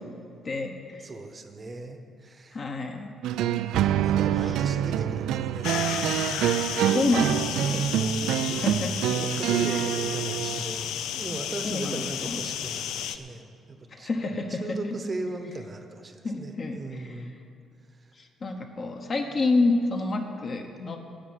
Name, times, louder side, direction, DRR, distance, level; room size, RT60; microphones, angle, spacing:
voice 1, 0.4-1.1 2.5-3.1 4.5-4.6 6.9-7.4 8.6-8.9 9.7-9.8 11.6-12.4 13.9-15.0 16.2-16.8 18.2-21.0, left 3 dB, 35° left, 3 dB, 1.0 m, -28 dB
voice 2, 1.0-2.6 4.0-6.4 6.7-8.6 9.2-14.1 14.5-17.3, right 2 dB, 25° right, 7 dB, 0.9 m, -38 dB
sound 1, 3.2-10.6, right 11 dB, 85° right, 0.4 m, -26 dB
sound 2, 5.6-13.2, left 10 dB, 85° left, 0.6 m, -32 dB
10.0 x 8.4 x 9.7 m, 2.5 s
cardioid pair, 155°, 0 cm